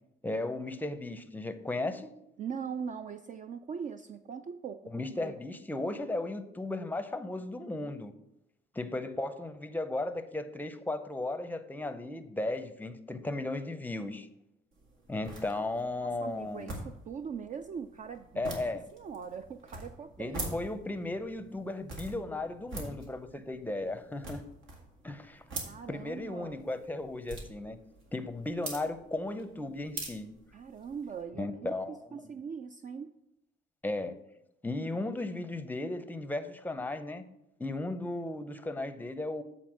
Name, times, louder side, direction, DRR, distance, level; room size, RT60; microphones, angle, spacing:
voice 1, 0.2-2.1 4.9-8.1 8.7-14.3 15.1-16.8 18.4-18.8 20.2-24.4 25.0-25.4 25.9-27.8 28.1-30.3 31.4-32.3 33.8-34.2 34.6-37.2 37.6-39.4, left 2 dB, 10° left, 10 dB, 0.6 m, -35 dB
voice 2, 2.4-4.9 5.2-5.4 16.0-18.6 18.9-20.4 25.6-26.6 30.5-33.1, right 6 dB, 40° right, 9 dB, 0.4 m, -41 dB
sound 1, 14.7-31.2, right 2 dB, 75° right, 1.9 m, -45 dB
7.8 x 4.1 x 6.2 m, 0.84 s
cardioid pair, 90°, 20 cm